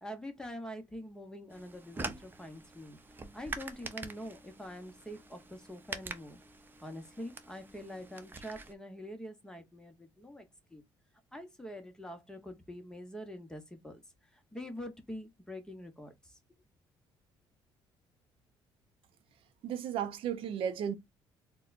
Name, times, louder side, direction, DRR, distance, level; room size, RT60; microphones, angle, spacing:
voice 1, 0.0-3.0 3.3-6.4 6.8-10.8 11.3-14.0 14.3-16.4, equal, 5° left, 1.0 m, -45 dB
sound 1, 1.5-8.7, right 3 dB, 20° right, 0.7 m, -45 dB
voice 2, 19.6-20.9, right 8 dB, 70° right, 0.6 m, -34 dB
4.1 x 2.2 x 2.5 m
cardioid pair, 110°, 10 cm